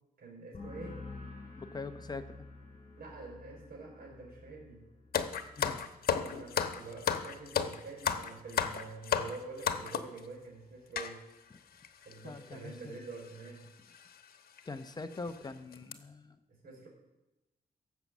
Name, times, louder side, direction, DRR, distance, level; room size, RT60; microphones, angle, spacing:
voice 1, 0.2-1.1 3.0-4.8 6.2-11.2 12.0-13.7 16.5-16.9, right 3 dB, 80° right, 1 dB, 4.7 m, -46 dB
sound 1, 0.5-8.0 8.3-8.8, left 3 dB, 45° left, 5.8 m, -51 dB
voice 2, 1.6-2.4 5.6-5.8 12.2-13.0 14.6-16.4, left 3 dB, 25° left, 8 dB, 0.8 m, -43 dB
sound 2, 5.1-10.2 11.0-11.1 11.8-11.9 12.1-12.3 13.3-13.5 13.9-14.1 14.6-14.7 15.1-15.3 15.7-15.9, left 7 dB, 90° left, 1.1 m, -33 dB
16.5 x 7.4 x 7.3 m, 1.0 s
wide cardioid pair, 135°, 15 cm